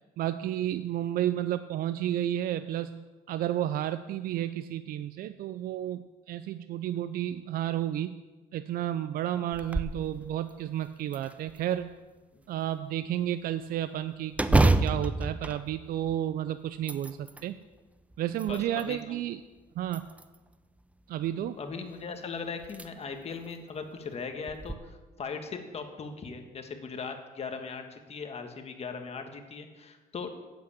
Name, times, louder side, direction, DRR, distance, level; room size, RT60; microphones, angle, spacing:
voice 1, 0.2-8.2 8.5-11.9 12.5-17.5 18.2-19.4 19.8-20.1 21.1-21.6, right 12 dB, 60° right, 12 dB, 0.4 m, -32 dB
sound 1, 9.5-10.0 10.5-10.6 11.1-11.9 14.3-16.3 16.7-17.5 18.1-19.0 19.9-20.5 22.0-22.1 22.6-22.9 23.3-23.4 24.5-24.7, right 2 dB, 10° right, 0.5 m, -28 dB
voice 2, 21.3-30.4, left 5 dB, 40° left, 5 dB, 1.4 m, -39 dB
8.2 x 7.9 x 8.3 m, 1.3 s
cardioid pair, 110°, 17 cm